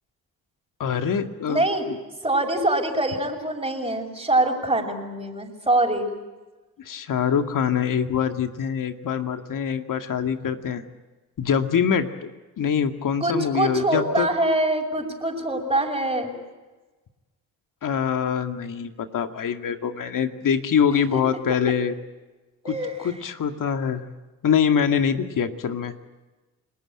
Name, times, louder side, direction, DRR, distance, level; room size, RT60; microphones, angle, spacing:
voice 1, 0.8-1.6 1.9-2.0 6.8-10.8 11.4-12.3 12.6-14.3 17.8-21.9 22.6-24.1 24.4-25.9, left 7 dB, 60° left, 6 dB, 2.3 m, -24 dB
voice 2, 1.5-1.9 2.2-6.1 13.2-16.3 22.6-23.1, right 1 dB, 15° right, -1 dB, 6.1 m, -24 dB
29.5 x 20.5 x 8.9 m, 1.2 s
supercardioid pair, 65°, 36 cm